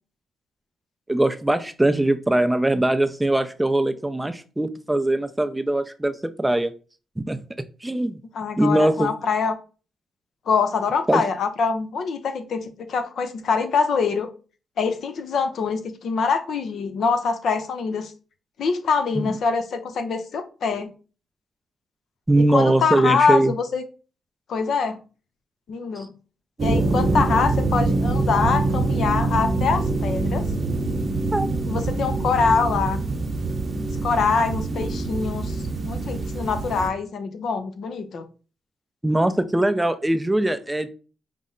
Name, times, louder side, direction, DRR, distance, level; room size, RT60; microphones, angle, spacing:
voice 1, 1.1-6.7 7.2-7.4 7.8-8.2 8.6-9.1 11.1-11.2 19.2-19.4 22.3-23.5 26.0-26.1 31.3-31.5 39.0-40.9, right 1 dB, 10° right, 9 dB, 0.4 m, -21 dB
voice 2, 8.3-9.6 10.5-14.3 14.8-18.1 18.6-20.9 22.5-23.8 24.5-25.0 25.7-26.1 26.6-30.5 31.7-33.0 33.8-35.6 35.8-38.3, left 5 dB, 70° left, 8 dB, 0.6 m, -24 dB
sound 1, 26.6-36.9, right 3 dB, 40° right, 0.7 m, -24 dB
5.2 x 2.0 x 3.7 m, 0.36 s
cardioid pair, 95°, 0 cm